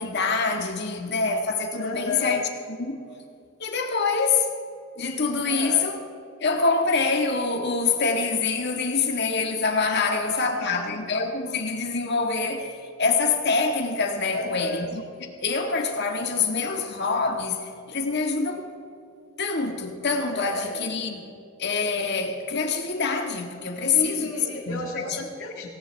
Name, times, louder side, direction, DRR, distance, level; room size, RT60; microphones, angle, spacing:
voice 1, 0.0-2.5 2.8-3.0 3.6-4.5 5.0-6.0 6.4-15.0 15.4-18.7 19.4-21.2 21.6-24.3 24.7-25.1, left 4 dB, 55° left, 1.8 m, -25 dB
voice 2, 1.8-2.5 5.5-5.9 9.9-11.0 14.3-14.9 20.3-21.0 23.9-25.7, left 3 dB, 80° left, 2.0 m, -33 dB
18.5 x 17.5 x 3.5 m
head